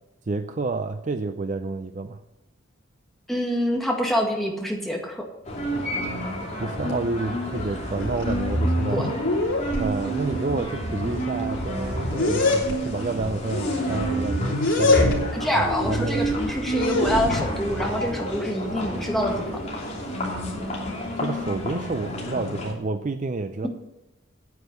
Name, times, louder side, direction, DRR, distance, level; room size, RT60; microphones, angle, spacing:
voice 1, 0.3-2.2 6.6-9.1 9.8-15.1 15.6-16.3 21.2-23.7, right 3 dB, 35° right, 9 dB, 0.5 m, -29 dB
voice 2, 3.3-5.3 8.9-9.1 15.3-19.5 23.6-23.7, equal, ahead, -1 dB, 1.9 m, -26 dB
sound 1, 5.4-22.7, right 1 dB, 35° left, 2.9 m, -30 dB
sound 2, 7.5-7.7 8.0-9.8 10.6-10.7 11.1-12.8 13.5-15.4 15.8-17.5, left 2 dB, 70° left, 3.3 m, -25 dB
9.4 x 8.9 x 6.8 m, 0.99 s
head